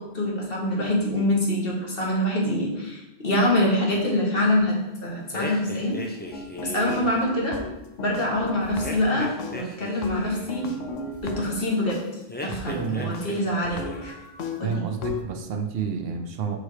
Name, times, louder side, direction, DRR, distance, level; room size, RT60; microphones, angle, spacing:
voice 1, 0.0-6.0 6.6-7.5 8.0-10.7 11.2-12.0 12.4-14.1 14.6-14.8, left 1 dB, 50° left, -3 dB, 1.7 m, -25 dB
sound 1, 5.3-7.2 8.8-10.6 12.3-13.4 13.7-14.2, left 1 dB, 15° left, 0.4 m, -36 dB
sound 2, 6.3-9.1 9.4-12.0 12.5-12.6 13.1-13.3 13.6-15.2, left 4 dB, 90° left, 1.1 m, -36 dB
voice 2, 12.5-13.3 14.6-16.6, right 6 dB, 60° right, 6 dB, 0.8 m, -30 dB
5.0 x 4.2 x 4.8 m, 0.92 s
omnidirectional pair, 1.3 m